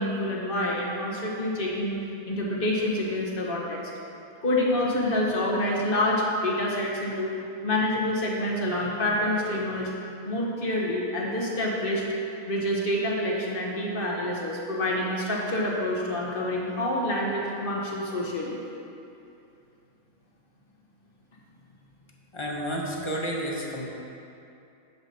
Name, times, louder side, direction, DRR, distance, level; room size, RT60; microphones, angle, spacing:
voice 1, 0.0-2.0 2.2-3.8 4.4-9.9 10.2-12.0 12.5-18.6, left 1 dB, 40° left, -3 dB, 1.3 m, -27 dB
voice 2, 22.3-23.9, equal, 25° left, -2 dB, 0.8 m, -31 dB
10.0 x 8.0 x 2.8 m, 2.7 s
omnidirectional pair, 1.5 m